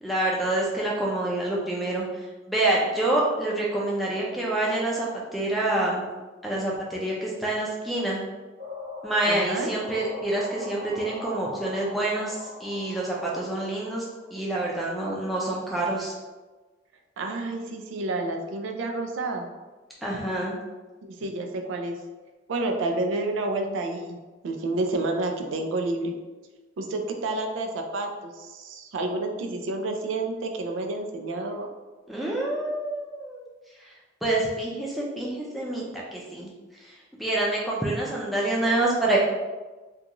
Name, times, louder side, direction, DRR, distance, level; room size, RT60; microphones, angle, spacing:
voice 1, 0.0-2.0 2.5-5.1 5.3-6.0 6.4-8.2 9.0-14.0 14.3-16.1 20.0-20.5 32.1-33.4 34.2-36.5 37.1-39.2, right 2 dB, ahead, -6 dB, 0.4 m, -27 dB
sound 1, 8.6-14.3, left 2 dB, 40° right, 0.6 m, -40 dB
voice 2, 9.3-9.7 17.2-19.5 21.0-22.0 22.5-24.2 24.4-26.1 26.8-31.7, right 2 dB, 85° right, 4 dB, 0.4 m, -29 dB
2.4 x 2.3 x 2.9 m, 1.2 s
head